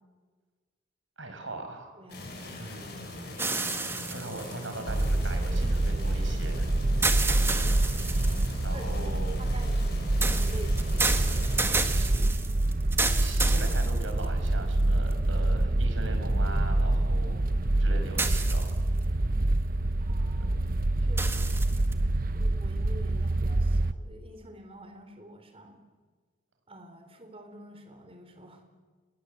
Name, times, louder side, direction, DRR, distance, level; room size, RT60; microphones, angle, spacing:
voice 1, 1.2-1.9 2.6-3.0 4.1-6.7 8.6-9.4 11.9-12.2 13.1-17.4 17.8-18.7, right 2 dB, 85° right, 5 dB, 6.0 m, -40 dB
voice 2, 1.9-2.3 7.6-8.1 8.7-8.9 9.4-11.5 20.0-21.6 22.3-25.8 26.7-28.6, equal, 30° right, 6 dB, 3.9 m, -48 dB
sound 1, 2.1-11.6, left 1 dB, 55° left, 7.4 m, -41 dB
sound 2, 3.4-5.6 7.0-8.6 10.2-14.5 15.1-15.2 18.2-19.0 21.2-21.9, right 3 dB, 10° right, 1.7 m, -31 dB
sound 3, 4.9-23.9, right 1 dB, 45° right, 0.8 m, -26 dB
30.0 x 21.5 x 8.1 m, 1.5 s
head